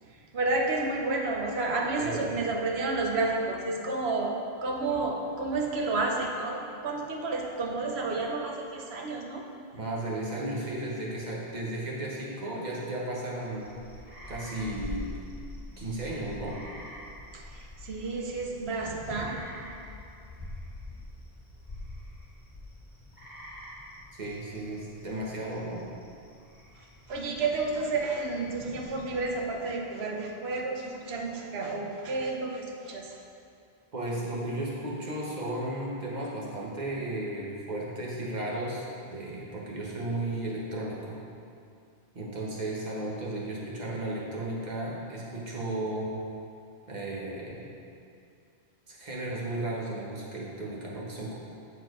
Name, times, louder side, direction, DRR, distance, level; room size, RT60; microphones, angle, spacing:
voice 1, 0.0-4.4 4.6-9.4 17.3-19.4 26.8-33.2, right 3 dB, 85° right, 1 dB, 1.1 m, -31 dB
voice 2, 2.0-2.3 9.7-13.7 14.3-15.1 15.8-16.6 24.1-25.9 33.9-41.2 42.1-46.2 46.9-47.7 48.9-51.4, right 1 dB, 45° right, -4 dB, 1.2 m, -34 dB
sound 1, 13.4-29.6, left 1 dB, 10° left, 1.5 m, -45 dB
7.3 x 4.3 x 4.8 m, 2.5 s
omnidirectional pair, 1.0 m